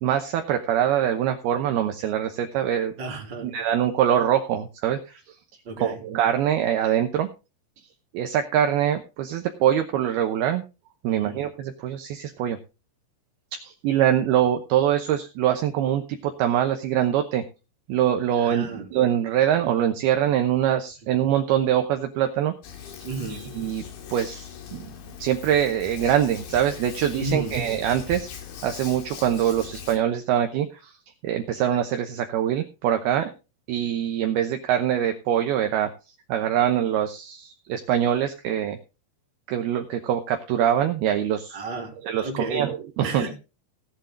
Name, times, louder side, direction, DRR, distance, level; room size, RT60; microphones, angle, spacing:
voice 1, 0.0-2.9 3.4-5.2 5.8-7.3 8.1-10.6 11.0-12.6 13.5-17.4 17.9-22.5 23.3-23.8 24.1-24.9 25.2-28.3 28.6-30.9 31.2-33.3 33.7-35.9 36.3-38.8 39.5-41.6 42.0-43.2, right 10 dB, 70° right, 5 dB, 2.6 m, -24 dB
voice 2, 3.0-3.5 5.6-6.0 11.1-11.4 18.4-18.9 23.0-23.4 27.1-27.6 41.5-42.6 43.0-43.4, right 3 dB, 25° right, 0 dB, 3.2 m, -32 dB
Hands, 22.6-30.0, left 8 dB, 85° left, 4.6 m, -40 dB
17.5 x 8.2 x 3.8 m, 0.30 s
omnidirectional pair, 5.1 m